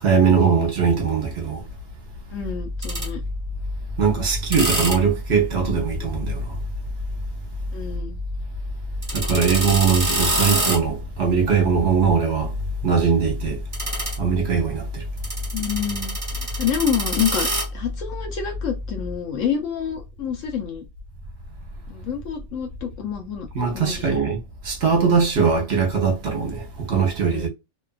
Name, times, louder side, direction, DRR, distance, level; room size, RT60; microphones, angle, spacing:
voice 1, 0.0-1.6 4.0-6.4 9.1-12.5 12.8-13.6 14.2-15.0 23.5-24.4 24.6-27.5, right 6 dB, 55° right, 1.1 m, -21 dB
voice 2, 2.3-3.2 7.7-8.2 15.5-20.8 21.9-23.5 23.7-24.2 27.2-27.5, left 8 dB, 75° left, 1.0 m, -28 dB
sound 1, 2.4-19.1, equal, 15° right, 0.9 m, -28 dB
2.8 x 2.4 x 2.3 m
omnidirectional pair, 1.4 m